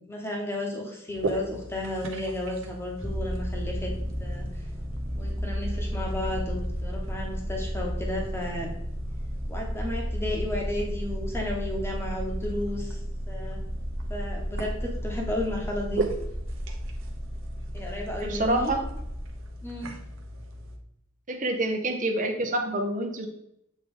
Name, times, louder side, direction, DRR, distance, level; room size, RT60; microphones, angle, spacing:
voice 1, 0.0-3.9 4.2-4.5 5.1-8.7 9.5-13.0 13.3-13.6 14.1-16.0 17.7-18.7 19.6-19.9, left 1 dB, 10° left, -1 dB, 1.2 m, -33 dB
sound 1, 1.1-20.8, right 1 dB, 60° right, 0.9 m, -39 dB
sound 2, 3.0-19.3, equal, 10° right, 0.5 m, -33 dB
voice 2, 18.2-18.8 21.3-23.3, right 1 dB, 35° right, 4 dB, 0.9 m, -27 dB
7.6 x 3.3 x 3.8 m, 0.79 s
head